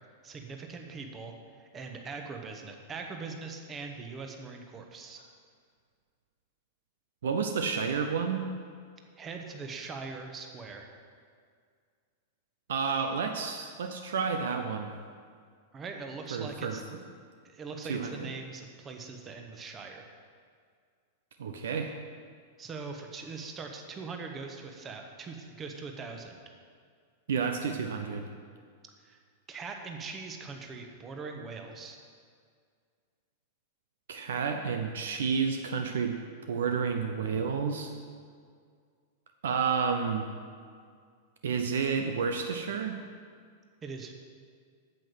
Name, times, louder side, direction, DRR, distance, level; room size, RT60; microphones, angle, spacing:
voice 1, 0.2-5.2 9.2-10.9 15.7-17.0 17.4-20.1 22.6-26.4 29.0-29.2 29.5-32.0 43.8-44.1, right 4 dB, 25° right, 3 dB, 1.2 m, -41 dB
voice 2, 7.2-8.5 12.7-14.9 16.3-16.8 17.9-18.3 21.4-21.9 27.3-28.3 34.1-36.2 36.5-37.9 39.4-40.3 41.4-43.0, right 6 dB, 65° right, 5 dB, 0.6 m, -30 dB
8.9 x 7.9 x 6.3 m, 2.1 s
figure-of-eight pair, 95°, 0 cm